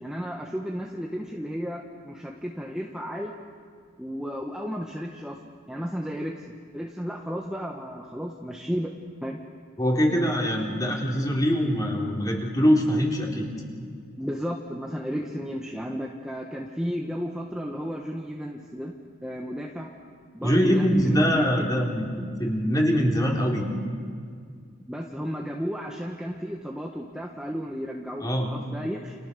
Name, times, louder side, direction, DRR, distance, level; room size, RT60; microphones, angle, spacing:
voice 1, 0.0-3.3 4.0-5.4 5.7-6.4 6.7-8.9 9.2-9.4 14.2-18.9 19.2-19.9 20.3-21.7 24.9-29.1, equal, 5° right, 0 dB, 1.4 m, -33 dB
voice 2, 9.8-13.5 20.4-23.7 28.2-28.5, equal, 20° left, 0 dB, 3.8 m, -23 dB
29.5 x 28.5 x 6.9 m, 2.1 s
head